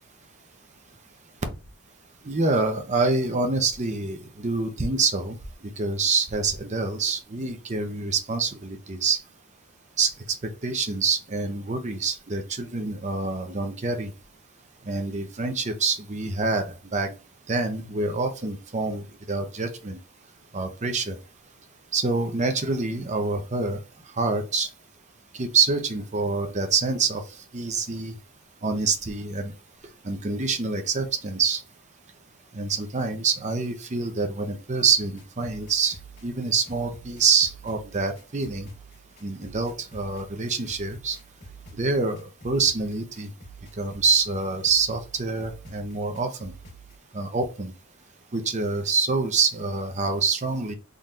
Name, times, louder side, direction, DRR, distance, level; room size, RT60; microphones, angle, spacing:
voice 1, 2.2-5.4 5.6-9.2 10.0-10.1 10.6-14.1 14.9-17.2 17.5-20.0 20.5-21.2 21.9-23.8 24.2-24.7 25.3-27.2 27.5-28.1 28.6-29.5 30.0-31.6 32.5-38.7 39.2-41.2 41.8-43.3 43.8-46.5 47.1-47.7 48.3-50.7, right 4 dB, 35° right, 0.7 m, -26 dB
sound 1, 34.9-47.0, right 3 dB, 50° left, 2.0 m, -47 dB
3.7 x 3.2 x 2.7 m
head